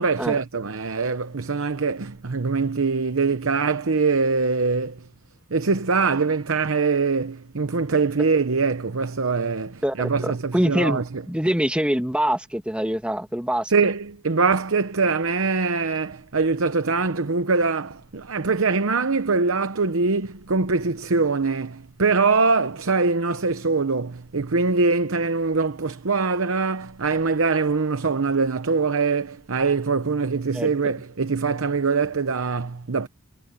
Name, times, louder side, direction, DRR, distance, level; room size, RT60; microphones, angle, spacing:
voice 1, 0.0-5.1 5.5-11.0 13.7-33.1, right 4 dB, 70° right, 0.9 m, -23 dB
voice 2, 9.8-11.0 11.3-13.7 30.5-30.7, equal, 5° right, 1.6 m, -24 dB
head